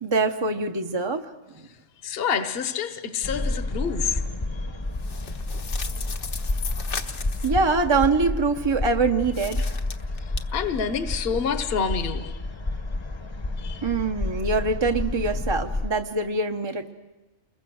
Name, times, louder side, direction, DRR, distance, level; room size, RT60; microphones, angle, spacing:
voice 1, 0.0-1.2 7.4-9.8 13.8-16.9, right 3 dB, 25° right, 4 dB, 0.7 m, -24 dB
voice 2, 2.0-4.2 10.5-12.4 13.6-13.9, left 6 dB, 55° left, 9 dB, 1.2 m, -27 dB
sound 1, 3.2-15.9, left 2 dB, 25° left, 0.9 m, -30 dB
sound 2, 4.9-7.6 9.3-10.4, left 5 dB, 75° left, 1.5 m, -36 dB
29.5 x 21.5 x 6.3 m, 1.1 s
omnidirectional pair, 1.2 m